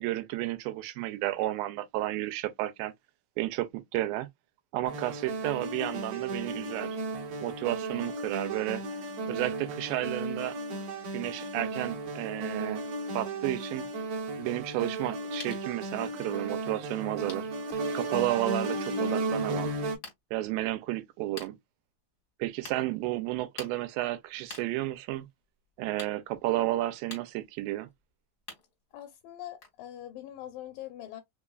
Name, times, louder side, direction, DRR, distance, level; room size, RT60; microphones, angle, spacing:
voice 1, 0.0-2.9 3.4-4.3 4.7-7.0 7.4-8.8 9.3-10.6 11.1-12.8 13.1-13.9 14.4-17.5 17.9-19.7 20.3-21.6 22.4-25.3 25.8-27.9, right 16 dB, 85° right, 2.3 m, -32 dB
sound 1, 4.8-19.9, right 2 dB, 65° right, 1.9 m, -34 dB
sound 2, 13.9-16.4 16.9-17.0 17.3-17.9 18.5-18.9 19.4-20.2 20.8-20.9 21.4-21.5 22.3-22.4 22.6-22.8 23.6-29.1 29.4-29.8, left 3 dB, 55° left, 0.8 m, -48 dB
voice 2, 28.9-31.2, left 12 dB, 80° left, 2.2 m, -43 dB
5.4 x 2.3 x 2.3 m
omnidirectional pair, 4.1 m